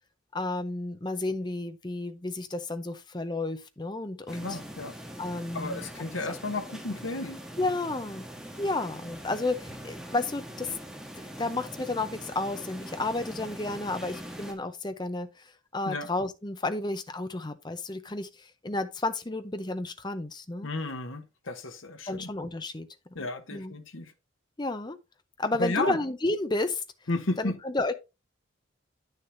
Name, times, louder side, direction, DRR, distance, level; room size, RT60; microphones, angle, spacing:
voice 1, 0.3-4.6 5.2-5.8 7.6-8.3 8.6-10.8 11.4-20.7 22.1-22.9 23.2-23.7 24.6-25.0 25.4-26.8 27.4-27.9, left 2 dB, 20° left, 0.7 m, -32 dB
sound 1, 4.3-14.5, equal, 5° right, 1.4 m, -43 dB
voice 2, 4.4-4.9 5.5-7.4 15.9-16.1 20.6-22.3 23.1-24.1 25.6-26.0 27.1-27.6, left 2 dB, 80° left, 1.1 m, -33 dB
9.7 x 6.6 x 2.7 m
head